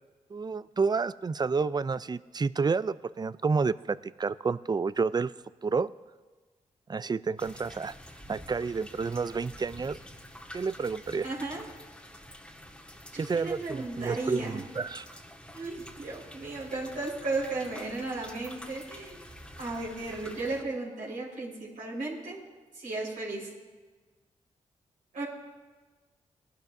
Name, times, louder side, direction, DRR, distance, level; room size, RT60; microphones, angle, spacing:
voice 1, 0.3-5.3 5.6-5.9 6.9-7.9 8.3-10.0 10.5-11.3 13.2-15.1, right 4 dB, 30° right, 17 dB, 0.4 m, -30 dB
sound 1, 7.4-20.6, left 1 dB, 5° left, 1.6 m, -48 dB
voice 2, 11.2-11.7 13.1-14.6 15.5-19.3 19.6-22.4 22.7-23.5 25.1-25.2, right 2 dB, 85° right, -7 dB, 4.2 m, -35 dB
18.5 x 12.0 x 2.6 m, 1.3 s
cardioid pair, 50°, 14 cm